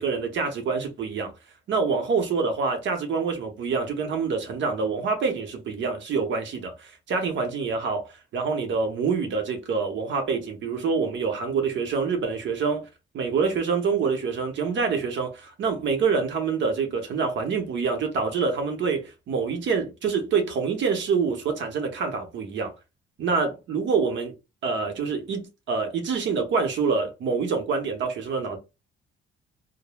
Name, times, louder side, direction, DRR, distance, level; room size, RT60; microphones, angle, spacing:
voice 1, 0.0-1.3 1.7-12.9 13.1-22.7 23.2-24.3 24.6-28.6, right 5 dB, 70° right, 0.8 m, -26 dB
3.1 x 2.0 x 2.2 m
cardioid pair, 90°, 20 cm